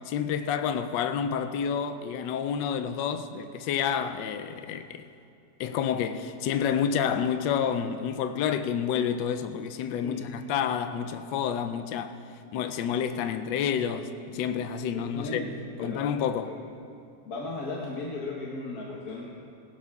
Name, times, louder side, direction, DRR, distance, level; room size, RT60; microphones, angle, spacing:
voice 1, 0.1-5.1 5.6-12.2 12.5-15.4 15.8-16.6, left 8 dB, 80° left, 1.2 m, -29 dB
voice 2, 15.1-16.1 16.4-16.6 17.2-19.2, left 2 dB, 60° left, 1.6 m, -36 dB
18.5 x 16.5 x 2.4 m
omnidirectional pair, 1.9 m